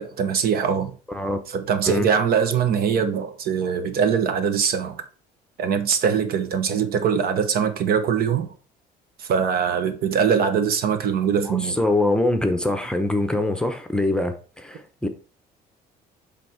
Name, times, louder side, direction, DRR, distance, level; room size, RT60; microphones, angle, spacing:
voice 1, 0.0-0.9 1.5-5.0 5.6-8.5 9.2-11.8, right 7 dB, 65° right, 1.1 m, -22 dB
voice 2, 1.1-1.4 1.9-2.1 11.4-15.1, left 2 dB, 5° left, 0.8 m, -24 dB
7.6 x 3.6 x 4.5 m
cardioid pair, 110°, 17 cm